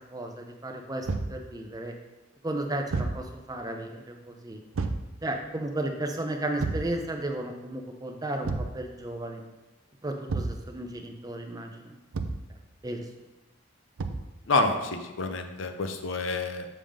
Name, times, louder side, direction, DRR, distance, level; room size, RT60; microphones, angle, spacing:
voice 1, 0.1-1.9 2.4-4.6 5.2-9.4 10.0-11.9 12.8-13.0, right 1 dB, 20° right, 3 dB, 0.6 m, -34 dB
Thump thud, 1.1-1.4 2.9-3.3 4.7-5.1 6.6-6.9 8.4-8.8 10.3-10.6 12.1-12.5 14.0-14.3, right 3 dB, 85° right, 0.5 m, -30 dB
voice 2, 14.5-16.7, left 3 dB, 70° left, 7 dB, 0.6 m, -28 dB
7.3 x 3.6 x 5.0 m, 1.1 s
head